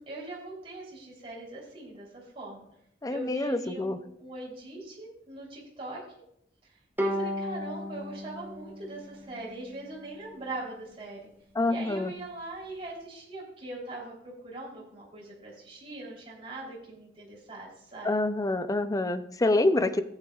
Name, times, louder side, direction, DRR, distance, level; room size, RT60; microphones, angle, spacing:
voice 1, 0.0-2.7 3.1-6.0 6.6-6.7 7.0-11.2 11.7-14.1 14.4-18.1, right 2 dB, 35° right, -5 dB, 3.3 m, -41 dB
voice 2, 3.0-4.0 11.5-12.1 18.0-20.0, left 2 dB, 20° left, 11 dB, 0.5 m, -26 dB
Bowed string instrument, 7.0-10.3, equal, 10° right, 1.1 m, -35 dB
15.0 x 8.9 x 2.4 m, 0.74 s
head